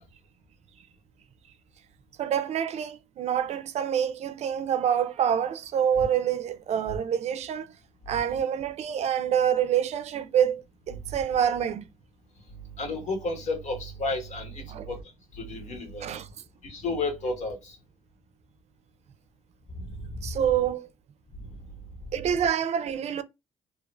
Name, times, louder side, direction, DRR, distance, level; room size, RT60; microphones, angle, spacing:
voice 1, 2.2-7.7 8.1-11.8 14.7-14.9 16.0-16.3 20.2-20.9 22.1-23.2, right 9 dB, 60° right, 0.5 m, -26 dB
voice 2, 12.8-15.0 15.3-16.1 16.6-17.7, left 2 dB, 70° left, 1.3 m, -32 dB
2.8 x 2.5 x 3.0 m
supercardioid pair, 60°, 12 cm